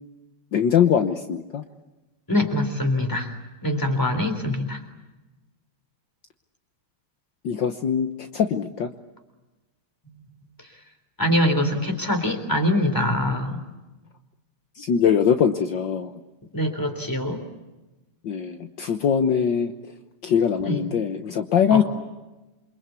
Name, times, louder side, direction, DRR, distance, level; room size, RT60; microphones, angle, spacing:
voice 1, 0.5-1.6 7.4-8.9 14.8-16.1 18.2-19.7 20.2-21.8, left 7 dB, 65° left, 7 dB, 1.7 m, -22 dB
voice 2, 2.3-3.3 3.6-4.8 11.2-13.6 16.5-17.4 20.6-20.8 21.7-21.8, left 1 dB, 10° left, 7 dB, 3.8 m, -23 dB
28.5 x 25.0 x 8.4 m, 1.1 s
omnidirectional pair, 2.3 m